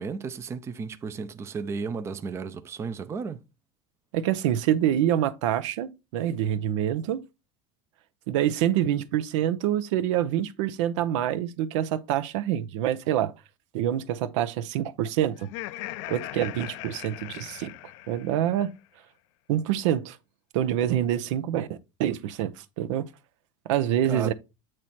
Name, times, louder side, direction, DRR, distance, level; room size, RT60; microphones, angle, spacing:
voice 1, 0.0-3.4 24.0-24.3, right 5 dB, 15° right, 0.5 m, -34 dB
voice 2, 4.1-7.2 8.3-13.3 13.7-15.5 16.1-17.7 18.1-18.7 19.5-20.2 20.5-23.0 23.7-24.3, right 11 dB, 80° right, 0.7 m, -26 dB
Laughter, 15.4-18.6, left 16 dB, 65° left, 0.5 m, -39 dB
8.7 x 3.2 x 4.2 m
supercardioid pair, 150°, 16 cm